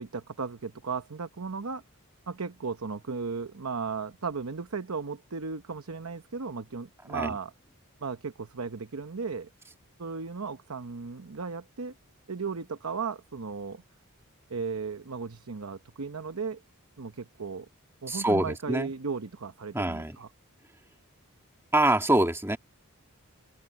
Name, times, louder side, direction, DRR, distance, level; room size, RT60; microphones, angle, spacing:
voice 1, 0.0-1.8 2.3-7.5 8.0-9.5 10.0-11.9 12.3-13.8 14.5-16.6 17.0-17.7 18.0-20.3, right 5 dB, 70° right, 0.9 m, -35 dB
voice 2, 18.1-18.9 19.7-20.2 21.7-22.6, right 1 dB, 10° right, 2.1 m, -25 dB
head